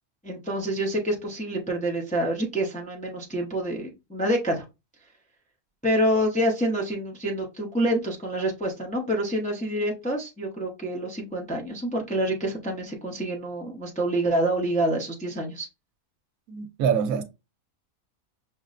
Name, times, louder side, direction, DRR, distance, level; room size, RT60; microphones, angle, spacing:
voice 1, 0.2-4.6 5.8-15.7, right 1 dB, 10° left, 0.5 m, -27 dB
voice 2, 16.5-17.2, right 7 dB, 80° right, 1.0 m, -25 dB
5.9 x 2.1 x 2.4 m
omnidirectional pair, 1.5 m